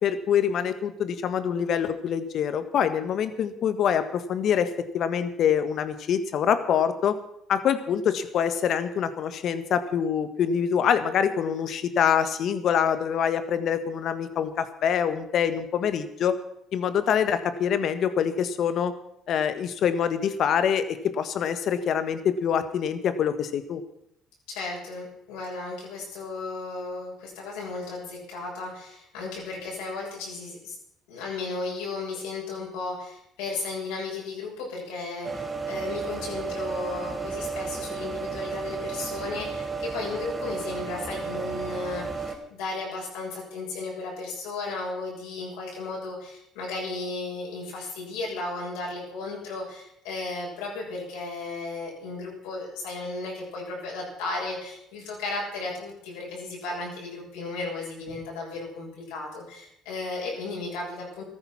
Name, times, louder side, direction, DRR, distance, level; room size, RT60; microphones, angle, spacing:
voice 1, 0.0-7.2 7.5-16.4 16.7-18.9 19.3-23.8, left 8 dB, 60° left, 11 dB, 1.6 m, -25 dB
voice 2, 24.5-30.7 31.1-61.2, left 3 dB, 85° left, -3 dB, 7.0 m, -34 dB
sound 1, 35.2-42.3, right 4 dB, 30° right, 3.9 m, -33 dB
15.0 x 13.5 x 5.9 m, 0.74 s
hypercardioid pair, 60°, 0 cm